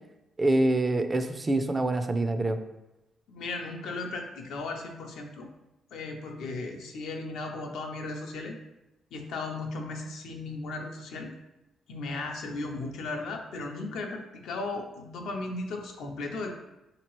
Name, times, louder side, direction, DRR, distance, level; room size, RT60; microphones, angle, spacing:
voice 1, 0.4-2.6, right 2 dB, 25° right, 8 dB, 0.3 m, -25 dB
voice 2, 3.3-5.5 5.9-8.5 9.1-11.3 11.9-16.5, left 3 dB, 80° left, 2 dB, 0.5 m, -36 dB
3.7 x 2.8 x 3.0 m, 0.95 s
cardioid pair, 90°, 0 cm